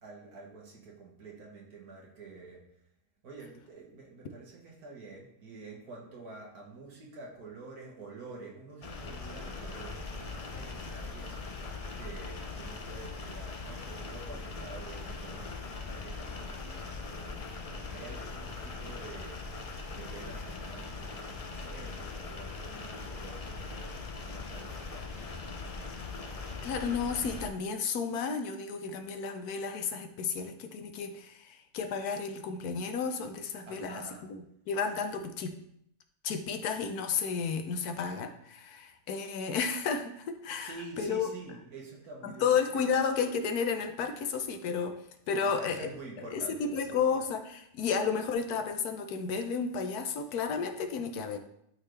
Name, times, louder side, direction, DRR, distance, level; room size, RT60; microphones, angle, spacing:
voice 1, 0.0-2.7 3.2-19.6 19.8-25.3 33.7-34.3 40.6-42.9 45.4-47.2, right 3 dB, 75° right, -1 dB, 2.0 m, -48 dB
sound 1, 8.8-27.5, left 3 dB, 55° left, 0.4 m, -41 dB
voice 2, 26.6-34.0 34.3-35.5 36.2-41.3 42.2-44.9 45.3-45.9 46.3-51.4, left 6 dB, 80° left, 6 dB, 1.3 m, -32 dB
11.5 x 3.9 x 3.3 m, 0.75 s
omnidirectional pair, 1.6 m